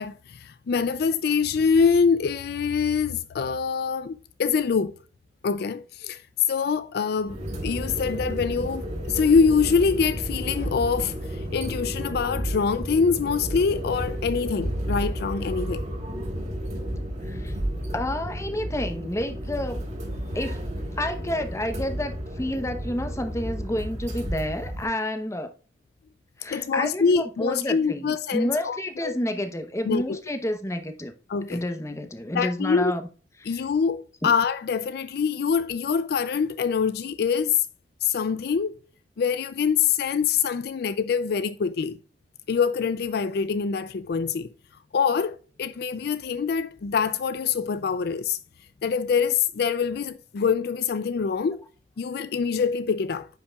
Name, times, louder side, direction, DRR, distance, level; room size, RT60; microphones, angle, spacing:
voice 1, 0.0-5.0 5.4-7.4 7.6-15.9 26.5-29.2 29.9-30.2 31.3-31.6 32.3-32.9 33.5-37.7 38.0-38.8 39.2-42.0 42.5-44.5 44.9-48.4 48.8-51.6 52.0-53.3, left 6 dB, 60° left, 0.4 m, -25 dB
sound 1, 7.2-24.8, equal, 40° right, 3.0 m, -32 dB
voice 2, 17.2-17.5 17.9-19.8 20.3-20.6 21.0-25.5 26.4-27.0 27.4-31.1 31.5-33.0 33.4-33.5 34.2-34.3, left 1 dB, 15° left, 0.9 m, -29 dB
9.9 x 5.7 x 2.4 m
head